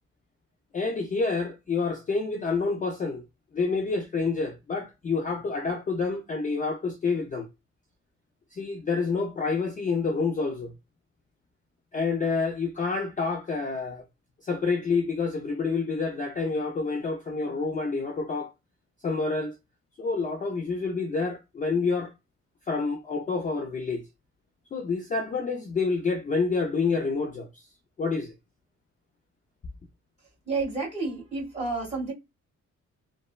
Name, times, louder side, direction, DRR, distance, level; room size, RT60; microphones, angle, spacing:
voice 1, 0.7-3.2 3.5-7.5 8.5-10.7 11.9-14.0 14.4-18.5 19.0-19.5 20.0-22.1 22.7-24.0 24.7-27.6 28.0-28.3, left 4 dB, 25° left, 0.4 m, -28 dB
voice 2, 30.5-32.1, right 3 dB, 20° right, 1.6 m, -30 dB
3.0 x 2.1 x 2.2 m
cardioid pair, 150°, 30 cm